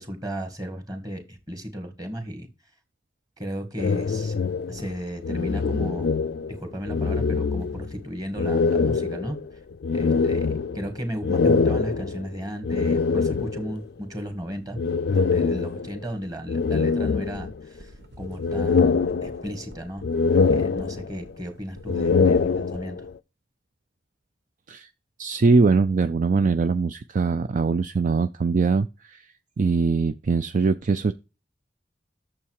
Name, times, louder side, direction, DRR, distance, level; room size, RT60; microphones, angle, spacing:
voice 1, 0.0-2.5 3.4-4.3 4.7-6.1 6.5-9.4 9.9-14.8 15.1-20.1 20.5-23.1, equal, 20° right, 2.0 m, -34 dB
sound 1, 3.8-6.6 6.8-8.0 8.4-13.8 14.8-16.1 16.5-17.8 18.2-19.7 20.0-21.3 21.8-23.1, left 4 dB, 65° left, 0.4 m, -24 dB
sound 2, 17.0-22.8, right 1 dB, 65° right, 1.1 m, -50 dB
voice 2, 25.2-29.2 29.6-31.1, right 4 dB, 45° right, 0.4 m, -22 dB
8.6 x 7.2 x 4.7 m
head